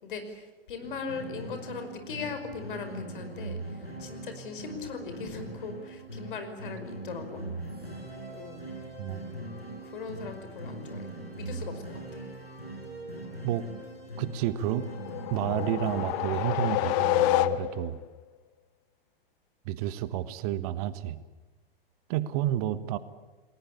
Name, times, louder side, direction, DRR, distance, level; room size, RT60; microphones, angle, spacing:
voice 1, 0.0-7.4 8.3-8.7 9.8-12.3, left 5 dB, 60° left, 7 dB, 5.4 m, -39 dB
sound 1, 0.8-17.3, right 2 dB, 90° left, 7.3 m, -41 dB
voice 2, 14.2-14.9 15.3-18.0 19.6-21.2 22.1-23.0, right 12 dB, 40° right, 14 dB, 1.4 m, -30 dB
sound 2, 14.8-18.0, left 16 dB, 35° left, 0.8 m, -28 dB
30.0 x 20.5 x 8.6 m, 1.2 s
figure-of-eight pair, 100°, 30 cm